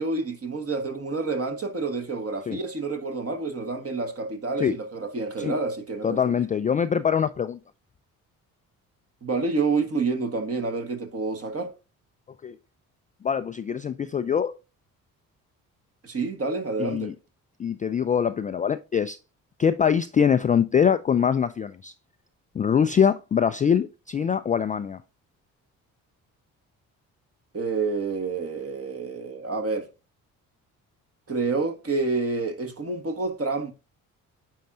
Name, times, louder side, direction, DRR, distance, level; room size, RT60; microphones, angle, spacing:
voice 1, 0.0-6.3 9.2-11.7 16.0-17.1 27.5-29.9 31.3-33.7, right 3 dB, 35° right, 1.5 m, -28 dB
voice 2, 6.0-7.6 12.4-12.6 13.2-14.5 16.8-17.1 17.6-19.2 19.6-21.9 22.5-25.0, left 7 dB, 20° left, 0.3 m, -23 dB
9.1 x 4.6 x 2.6 m
hypercardioid pair, 45°, 42 cm